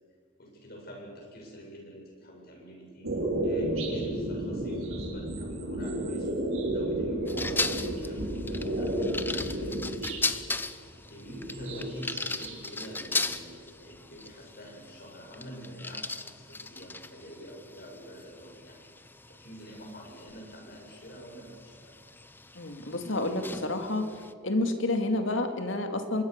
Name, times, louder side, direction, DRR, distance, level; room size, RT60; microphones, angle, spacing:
voice 1, 0.4-3.1 3.4-10.7 11.1-18.9 19.3-21.9, equal, 50° left, -1 dB, 7.7 m, -46 dB
sound 1, 3.0-10.3 11.2-12.6 12.9-13.8, right 1 dB, 80° right, 5.7 m, -32 dB
sound 2, 7.3-24.3, left 3 dB, 10° left, 0.7 m, -38 dB
voice 2, 22.6-24.1 24.4-26.2, left 2 dB, 65° left, 6 dB, 2.5 m, -29 dB
25.5 x 22.0 x 6.8 m, 2.2 s
head